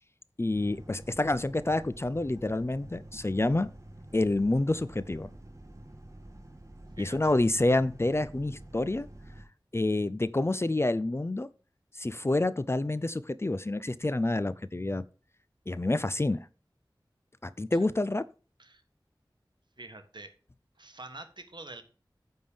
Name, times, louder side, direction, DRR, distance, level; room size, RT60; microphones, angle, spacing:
voice 1, 0.4-3.7 4.1-5.3 7.0-9.1 9.7-11.5 12.0-15.0 15.7-16.5 17.4-18.2, left 2 dB, 30° left, 0.5 m, -28 dB
sound 1, 0.5-9.4, right 1 dB, 35° right, 1.6 m, -48 dB
voice 2, 7.0-7.3 17.7-17.8 18.6-18.8 19.8-20.3 20.8-21.8, right 2 dB, 60° right, 1.4 m, -46 dB
9.4 x 3.7 x 7.0 m
wide cardioid pair, 60°, 9 cm